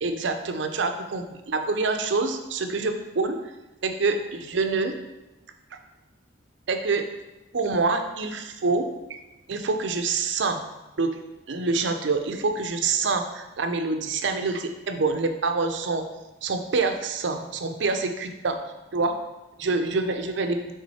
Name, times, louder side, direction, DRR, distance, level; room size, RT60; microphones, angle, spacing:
voice 1, 0.0-3.4 3.8-4.9 6.7-7.0 7.5-9.2 9.5-10.6 11.0-11.2 11.5-16.0 16.4-18.6 18.9-19.1 19.6-20.6, right 3 dB, 75° right, 6 dB, 0.6 m, -26 dB
6.2 x 3.5 x 4.3 m, 1.0 s
head